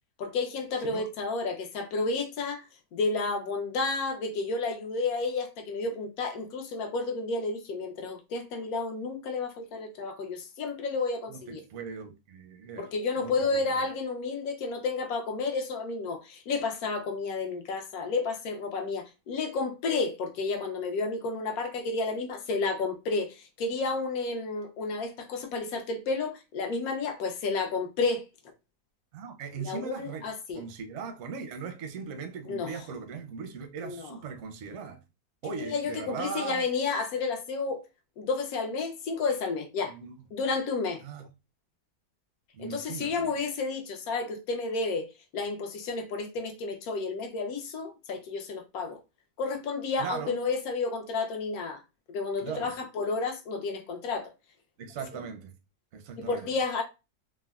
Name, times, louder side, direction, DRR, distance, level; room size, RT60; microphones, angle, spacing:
voice 1, 0.2-2.6 2.9-11.6 12.8-28.2 29.6-30.6 32.5-32.7 33.8-34.1 35.6-37.8 38.2-39.9 40.3-41.0 42.6-49.0 49.4-51.8 52.1-54.3 56.2-56.8, left 3 dB, 70° left, 1.0 m, -31 dB
voice 2, 11.3-12.9 13.2-13.8 29.1-35.0 35.4-36.6 39.9-40.1 41.0-41.3 42.5-43.3 50.0-50.4 52.4-52.7 54.8-55.5 55.9-56.5, right 6 dB, 65° right, 0.7 m, -39 dB
3.4 x 2.1 x 2.3 m
omnidirectional pair, 1.7 m